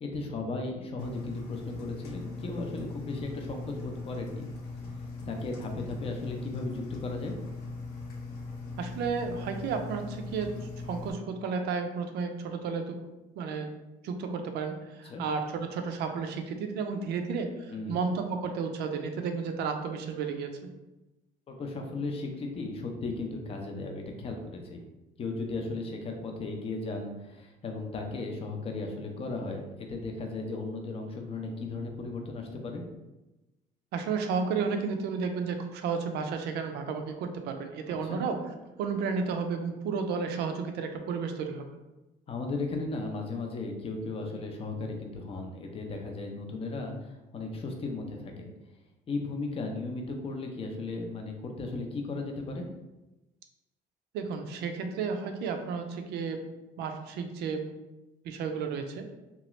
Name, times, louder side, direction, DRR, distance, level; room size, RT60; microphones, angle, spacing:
voice 1, 0.0-4.5 5.3-7.3 15.0-15.2 17.7-18.0 21.5-24.8 25.2-32.8 37.9-38.2 42.3-48.4 49.1-52.6, left 3 dB, 35° left, 2 dB, 0.6 m, -36 dB
Engine, 1.0-11.1, left 3 dB, 80° left, 0.7 m, -40 dB
voice 2, 8.8-10.5 10.8-13.0 13.4-13.7 14.0-20.7 33.9-38.4 38.8-41.7 54.1-56.4 56.8-57.6 58.2-59.0, right 5 dB, 80° right, 6 dB, 0.5 m, -32 dB
2.9 x 2.4 x 3.0 m, 1.0 s
cardioid pair, 110°, 17 cm